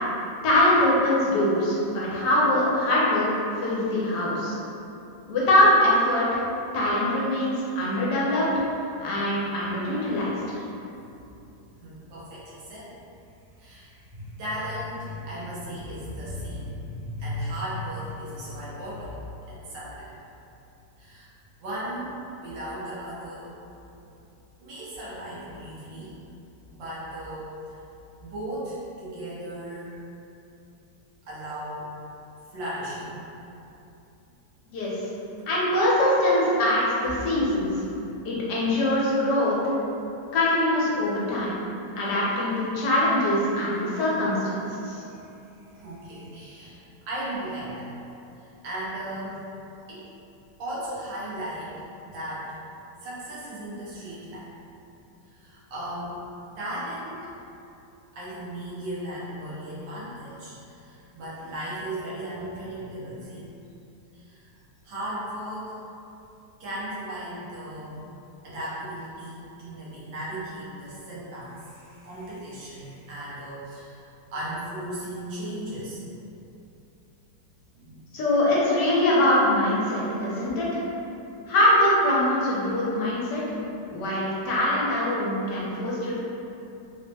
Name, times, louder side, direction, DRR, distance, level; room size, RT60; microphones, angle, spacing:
voice 1, 0.4-4.5 5.3-6.4 6.7-8.4 9.0-10.6 34.7-34.9 35.5-37.7 38.2-39.6 40.3-41.6 42.0-45.0 78.1-80.8 81.5-83.4 83.9-86.1, left 1 dB, 70° left, -6 dB, 1.2 m, -23 dB
voice 2, 11.8-13.0 13.6-19.2 19.5-20.1 21.0-21.3 21.6-22.1 22.4-23.6 24.6-26.1 26.7-27.5 28.2-30.0 31.3-31.9 32.3-33.3 44.9-45.1 45.7-46.8 47.0-47.9 48.6-49.5 49.9-50.1 50.6-52.5 53.0-54.5 55.4-56.2 56.6-57.3 58.1-63.5 64.1-64.5 64.8-65.8 66.6-68.0 68.4-74.0 74.3-76.0 77.7-78.2, right 1 dB, 80° right, -8 dB, 1.6 m, -36 dB
3.8 x 2.0 x 3.3 m, 2.8 s
omnidirectional pair, 2.0 m